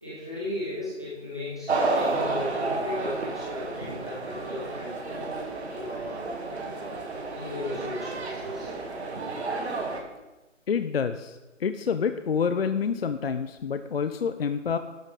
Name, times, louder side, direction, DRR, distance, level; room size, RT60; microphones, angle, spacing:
voice 1, 0.0-6.3 7.3-8.7 9.1-9.2, left 1 dB, 5° left, -9 dB, 0.5 m, -36 dB
sound 1, 1.7-10.0, right 3 dB, 60° right, 2.1 m, -31 dB
voice 2, 10.7-14.8, left 6 dB, 50° left, 10 dB, 0.6 m, -28 dB
12.5 x 12.0 x 3.9 m, 1.1 s
figure-of-eight pair, 150°, 37 cm